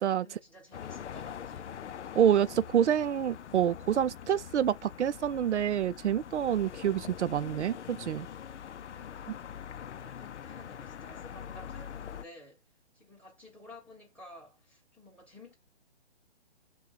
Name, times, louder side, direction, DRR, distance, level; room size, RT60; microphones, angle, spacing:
voice 1, 0.1-1.8 9.3-12.6 12.9-15.5, left 1 dB, 5° left, 1.6 m, -52 dB
sound 1, 0.7-12.2, left 9 dB, 85° left, 0.5 m, -44 dB
voice 2, 2.2-8.3, right 9 dB, 80° right, 0.5 m, -27 dB
5.8 x 2.3 x 3.9 m
hypercardioid pair, 150°, 34 cm